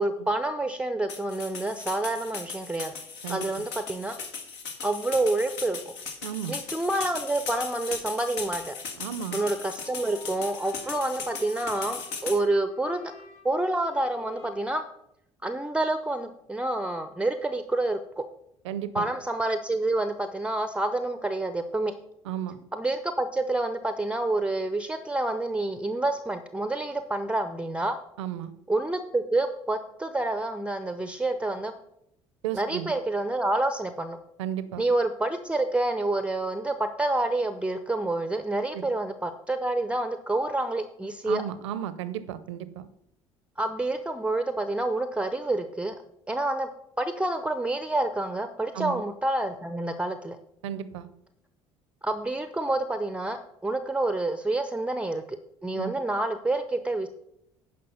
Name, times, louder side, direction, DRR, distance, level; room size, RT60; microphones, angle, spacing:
voice 1, 0.0-2.9 3.3-4.2 4.8-5.8 6.5-8.7 9.3-13.1 13.4-14.8 15.4-18.2 18.9-21.9 22.7-28.0 28.7-31.7 32.5-34.2 34.8-41.4 43.6-46.0 46.3-46.7 47.0-50.4 52.0-55.4 55.6-57.1, right 2 dB, 5° right, 10 dB, 0.7 m, -28 dB
sound 1, 1.1-12.4, left 5 dB, 70° left, 1.7 m, -38 dB
voice 2, 3.2-3.7 6.2-6.6 9.0-9.4 18.6-19.1 22.2-22.6 28.2-28.5 32.4-32.9 34.4-34.9 38.7-38.8 41.2-42.9 48.7-49.0 50.6-51.1 55.7-55.9, right 10 dB, 70° right, 14 dB, 0.7 m, -34 dB
sound 2, 8.9-14.5, left 4 dB, 45° left, 2.0 m, -50 dB
10.5 x 5.4 x 5.6 m, 0.77 s
figure-of-eight pair, 60°, 16 cm